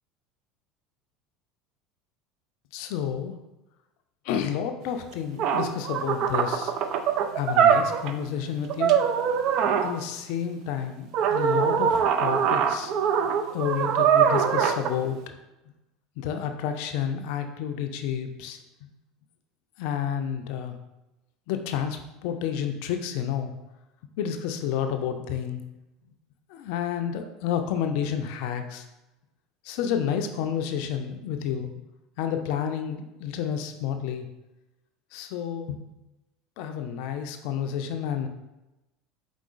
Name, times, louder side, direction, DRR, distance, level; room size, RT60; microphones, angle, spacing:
voice 1, 2.7-3.4 4.2-6.7 7.4-9.0 9.8-12.9 13.5-15.2 16.2-18.9 19.8-20.8 21.5-23.5 24.2-25.6 26.5-28.8 29.6-31.7 32.2-34.3 35.1-35.8 36.6-38.3, left 8 dB, 60° left, 6 dB, 0.4 m, -30 dB
sound 1, 5.1-5.2 5.4-8.2 8.7-9.9 11.1-14.9, right 8 dB, 55° right, 0.3 m, -23 dB
4.7 x 3.7 x 2.4 m, 0.97 s
figure-of-eight pair, 70°, 0 cm